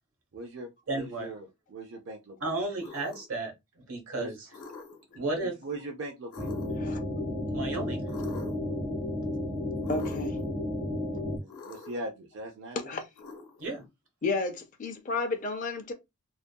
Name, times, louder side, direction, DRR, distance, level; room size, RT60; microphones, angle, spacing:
voice 1, 0.3-2.6 4.2-4.3 5.4-6.5 11.4-12.9, right 1 dB, 55° right, 0.4 m, -40 dB
voice 2, 0.9-1.3 2.4-4.4 5.1-5.5 7.5-8.0 13.6-13.8, right 2 dB, 70° right, 1.0 m, -33 dB
sound 1, 2.8-3.4 4.5-5.2 6.3-7.0 8.1-8.7 9.8-10.4 11.5-12.1 13.2-13.9, left 3 dB, 80° left, 0.8 m, -46 dB
sound 2, 6.4-11.4, left 1 dB, 25° right, 1.3 m, -32 dB
voice 3, 9.9-10.4 12.8-13.0 14.2-15.9, left 3 dB, 35° left, 0.4 m, -32 dB
2.6 x 2.3 x 2.2 m
head